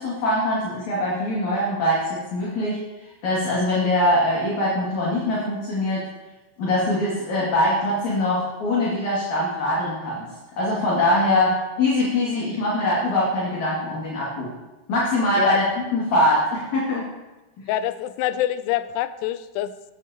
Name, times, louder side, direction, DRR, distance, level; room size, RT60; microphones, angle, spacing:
voice 1, 0.0-2.8 3.2-6.0 6.6-10.3 10.6-14.5 14.9-17.1, left 1 dB, 50° left, -6 dB, 3.3 m, -22 dB
voice 2, 17.7-19.9, left 13 dB, 85° left, 13 dB, 2.6 m, -25 dB
17.0 x 10.0 x 2.9 m, 1.1 s
omnidirectional pair, 4.8 m